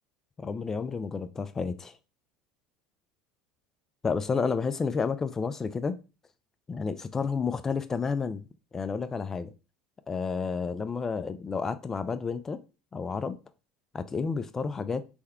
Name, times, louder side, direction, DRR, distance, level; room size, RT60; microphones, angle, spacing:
voice 1, 0.4-1.9 4.0-6.0 6.7-8.5 8.7-9.5 10.1-12.6 12.9-13.4 13.9-15.0, left 5 dB, 20° left, 0.3 m, -30 dB
3.4 x 2.1 x 3.5 m
supercardioid pair, 125°, 2 cm